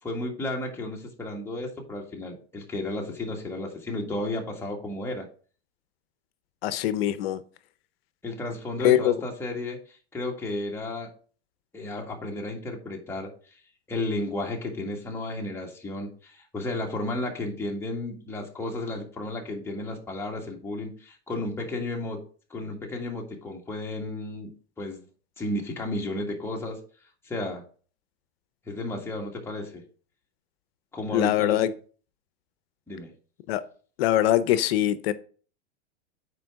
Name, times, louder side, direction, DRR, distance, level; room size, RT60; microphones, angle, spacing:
voice 1, 0.0-5.3 8.2-11.1 11.7-13.3 13.9-22.2 22.5-24.5 24.8-25.0 25.4-26.8 27.2-27.6 28.7-29.8 30.9-31.7 32.9-33.1, left 2 dB, 5° left, 1.6 m, -33 dB
voice 2, 6.6-7.4 8.8-9.1 31.1-31.7 33.5-33.6 34.0-35.1, left 12 dB, 60° left, 0.7 m, -22 dB
9.0 x 4.6 x 3.6 m
supercardioid pair, 130°, 34 cm